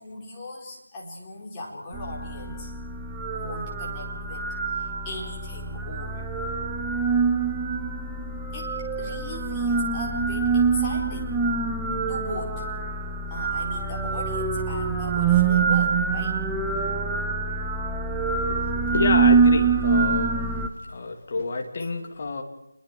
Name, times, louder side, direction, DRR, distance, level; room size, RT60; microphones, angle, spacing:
voice 1, 0.0-2.8 3.3-6.3 8.5-8.7 9.0-11.3 12.1-12.7 13.3-16.4, left 2 dB, 15° left, -4 dB, 4.4 m, -38 dB
sound 1, 1.9-20.7, right 4 dB, 10° right, 1.0 m, -25 dB
voice 2, 18.3-20.4 20.9-22.4, left 3 dB, 35° left, 3 dB, 2.9 m, -29 dB
29.0 x 22.0 x 4.7 m, 0.84 s
figure-of-eight pair, 165°, 0 cm